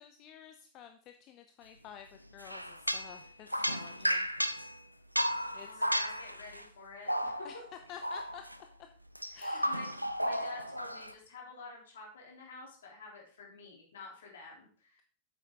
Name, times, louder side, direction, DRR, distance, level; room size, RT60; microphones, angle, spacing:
voice 1, 0.0-4.3 5.5-5.9 7.4-7.5 7.9-8.4 9.3-9.8, left 9 dB, 35° left, 7 dB, 0.7 m, -51 dB
sound 1, 2.4-4.8 5.1-6.6 7.1-7.7 8.0-8.6 9.1-11.1, equal, 90° right, 0.5 m, -34 dB
voice 2, 5.4-7.5 9.3-9.9 10.2-15.0, left 4 dB, 65° left, -1 dB, 3.4 m, -50 dB
8.6 x 7.8 x 3.7 m, 0.44 s
figure-of-eight pair, 90°, 0 cm